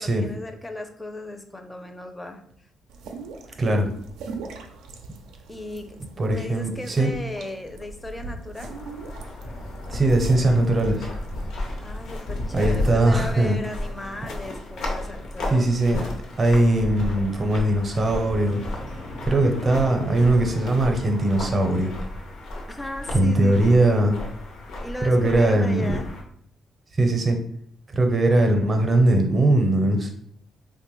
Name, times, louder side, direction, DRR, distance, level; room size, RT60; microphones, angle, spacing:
voice 1, 0.0-2.4 5.5-6.0 6.3-8.7 11.8-16.2 22.7-24.1 24.8-26.1, left 1 dB, 15° left, 5 dB, 0.4 m, -36 dB
sound 1, 2.9-11.4, right 3 dB, 90° right, 0.4 m, -41 dB
voice 2, 6.2-7.1 9.9-11.1 12.5-13.6 15.5-16.0 16.4-18.6 19.2-21.9 23.1-24.2 25.0-26.0 27.0-27.4 27.9-30.1, right 1 dB, 35° right, 3 dB, 0.6 m, -20 dB
sound 2, 8.6-26.2, left 1 dB, 80° left, 0.7 m, -33 dB
3.3 x 2.2 x 3.0 m, 0.66 s
cardioid pair, 90°, 0 cm